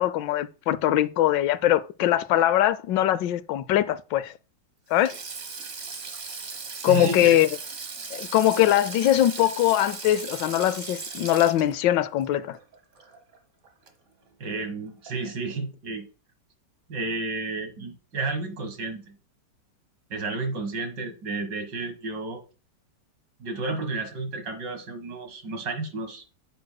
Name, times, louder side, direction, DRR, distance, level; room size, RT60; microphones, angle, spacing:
voice 1, 0.0-4.3 4.9-5.2 6.8-7.5 8.1-12.6, left 12 dB, 90° left, 1.3 m, -22 dB
Sink (filling or washing), 4.9-13.4 13.6-13.9 15.1-15.3, right 4 dB, 45° right, 1.5 m, -38 dB
voice 2, 6.8-7.4 14.4-16.1 16.9-19.2 20.1-22.4 23.4-26.2, right 3 dB, 75° right, 2.2 m, -32 dB
9.5 x 7.7 x 2.2 m
omnidirectional pair, 1.9 m